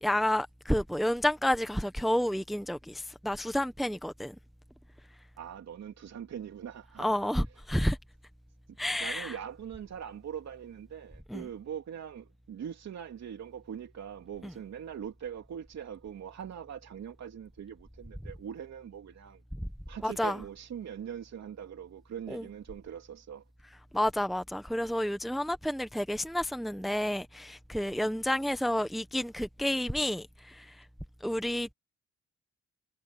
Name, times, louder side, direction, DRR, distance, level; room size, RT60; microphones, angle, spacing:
voice 1, 0.0-4.3 7.0-8.0 8.8-9.3 11.3-11.4 14.4-14.5 19.6-19.7 20.0-20.4 22.3-22.4 23.9-30.8 31.2-31.7, left 1 dB, ahead, 1.0 m, -30 dB
voice 2, 5.4-7.3 9.0-19.4 19.9-23.4, right 8 dB, 60° right, 3.3 m, -42 dB
cardioid pair, 90°, 30 cm